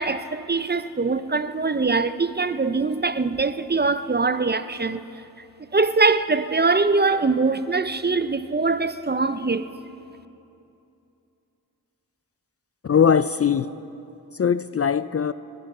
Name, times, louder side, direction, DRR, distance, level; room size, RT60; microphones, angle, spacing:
voice 1, 0.0-5.0 5.7-9.7, right 3 dB, 25° right, 0.5 m, -22 dB
voice 2, 12.8-13.7 14.3-15.3, left 7 dB, 40° left, 0.4 m, -20 dB
20.0 x 9.3 x 6.6 m
cardioid pair, 40°, 39 cm